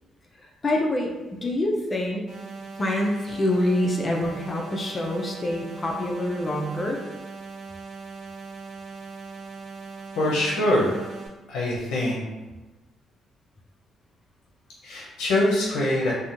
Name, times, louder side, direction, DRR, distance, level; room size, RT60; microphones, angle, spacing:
voice 1, 0.4-1.1 1.4-2.3 2.8-7.0, left 1 dB, 30° left, 0 dB, 0.4 m, -26 dB
sound 1, 2.3-11.3, right 4 dB, 75° right, 0.6 m, -40 dB
voice 2, 10.2-11.1 11.5-12.2 14.8-16.1, left 1 dB, 85° left, -4 dB, 0.6 m, -23 dB
2.8 x 2.2 x 2.5 m, 1.1 s
cardioid pair, 90°, 0 cm